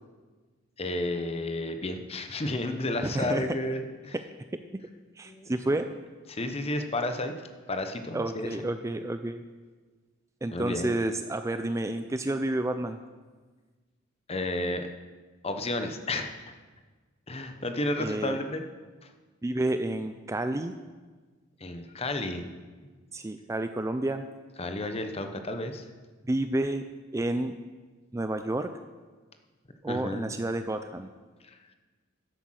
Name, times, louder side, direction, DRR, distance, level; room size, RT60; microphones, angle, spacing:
voice 1, 0.8-4.2 5.3-5.5 6.3-7.3 7.7-8.6 10.5-11.0 14.3-14.9 15.4-16.3 17.3-18.6 21.6-22.5 24.6-25.8 29.9-30.3 31.4-31.6, left 2 dB, 30° left, 7 dB, 0.9 m, -32 dB
voice 2, 3.0-3.7 5.2-5.9 8.1-9.4 10.4-13.0 18.0-18.4 19.4-20.7 23.1-24.2 26.2-26.8 27.1-27.5 28.1-28.7 29.8-31.1, right 1 dB, 15° right, 9 dB, 0.4 m, -30 dB
11.5 x 8.1 x 6.3 m, 1.4 s
head